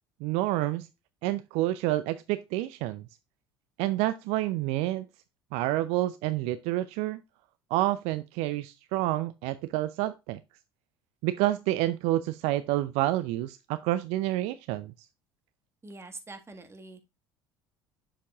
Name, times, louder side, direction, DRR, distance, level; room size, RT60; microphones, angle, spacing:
voice 1, 0.2-0.9 1.2-3.0 3.8-5.0 5.5-7.2 7.7-10.4 11.2-14.9, right 16 dB, 60° right, 0.5 m, -28 dB
voice 2, 15.8-17.0, right 3 dB, 20° right, 1.6 m, -45 dB
7.5 x 6.9 x 2.3 m
hypercardioid pair, 65°, 12 cm